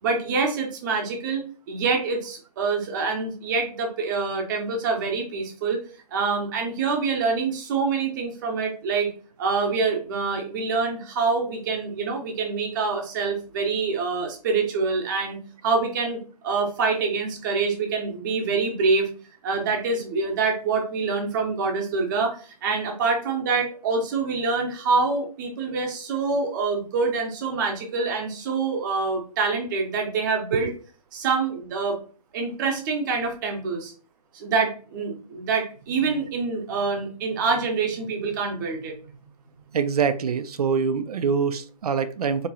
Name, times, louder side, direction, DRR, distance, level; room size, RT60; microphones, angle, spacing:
voice 1, 0.0-5.8 6.1-9.1 9.4-19.1 19.4-30.7 31.1-32.0 32.3-33.9 34.3-38.9, right 4 dB, 30° right, 2 dB, 0.9 m, -26 dB
voice 2, 39.7-42.5, right 6 dB, 65° right, 11 dB, 0.5 m, -24 dB
3.7 x 2.9 x 2.8 m, 0.39 s
hypercardioid pair, 155°, 21 cm